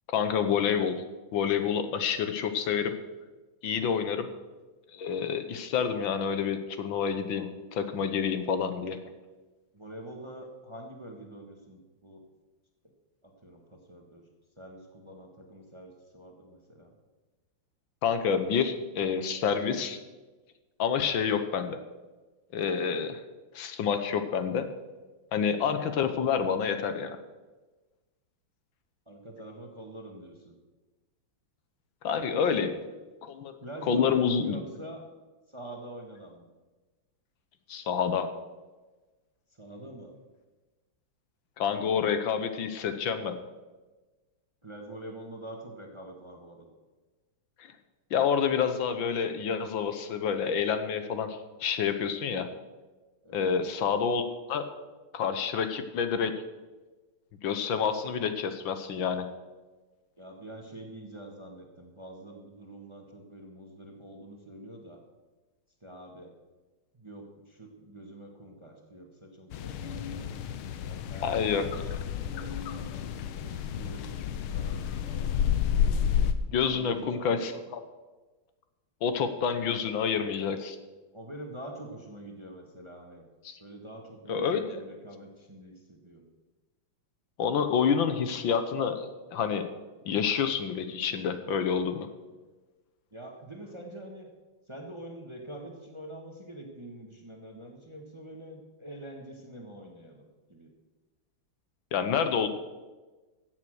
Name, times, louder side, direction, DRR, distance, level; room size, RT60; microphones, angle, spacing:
voice 1, 0.1-1.0 1.3-2.9 3.6-4.3 4.9-9.0 18.0-20.0 20.8-21.8 22.5-23.2 23.5-24.7 25.3-27.2 32.0-32.7 33.2-33.5 33.9-34.6 37.7-38.3 41.6-43.4 48.1-52.5 53.3-54.2 54.5-54.6 55.1-56.3 57.4-59.3 71.2-71.6 76.5-77.8 79.0-80.8 83.4-83.6 84.3-84.8 87.4-89.7 90.1-92.1 101.9-102.5, left 7 dB, 70° left, 9 dB, 1.6 m, -28 dB
voice 2, 9.7-12.2 13.2-14.2 14.6-16.9 29.1-30.5 32.3-32.7 33.6-35.0 35.5-36.5 39.5-40.1 44.6-46.7 53.2-53.6 60.2-65.0 65.8-66.3 66.9-70.3 70.8-71.3 71.5-73.1 73.3-75.3 76.6-77.5 81.1-83.2 83.6-86.3 93.1-94.3 94.7-100.2 100.5-100.7, right 1 dB, 15° right, 2 dB, 1.3 m, -45 dB
sound 1, 69.5-76.3, left 8 dB, 85° left, 1.6 m, -30 dB
15.5 x 7.6 x 6.3 m, 1.2 s
omnidirectional pair, 2.3 m